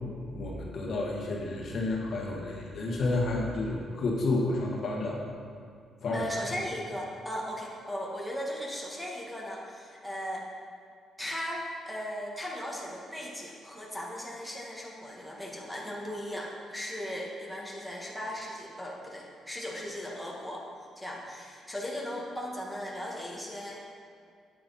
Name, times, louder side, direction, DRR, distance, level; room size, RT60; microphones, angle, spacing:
voice 1, 0.1-5.3 6.0-6.3, left 2 dB, 55° left, -1 dB, 1.6 m, -30 dB
voice 2, 6.1-10.5 11.2-20.6 21.0-23.8, equal, ahead, -4 dB, 2.0 m, -37 dB
9.5 x 9.4 x 4.3 m, 2.2 s
cardioid pair, 90°, 0 cm